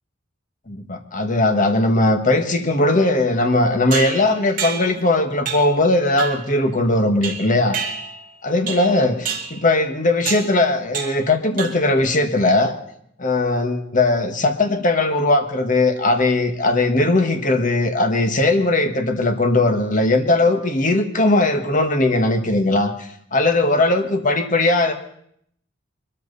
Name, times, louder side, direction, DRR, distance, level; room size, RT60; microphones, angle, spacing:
voice 1, 0.7-8.0 8.4-12.8 13.2-24.9, left 2 dB, 40° left, 6 dB, 1.6 m, -19 dB
sound 1, 3.9-5.0 5.5-5.8 6.2-6.5 7.2-8.3 8.7-9.0 9.3-9.6 10.3-10.6 10.9-11.3 11.6-12.0, right 7 dB, 45° right, 2.5 m, -29 dB
23.0 x 13.5 x 4.1 m, 0.69 s
head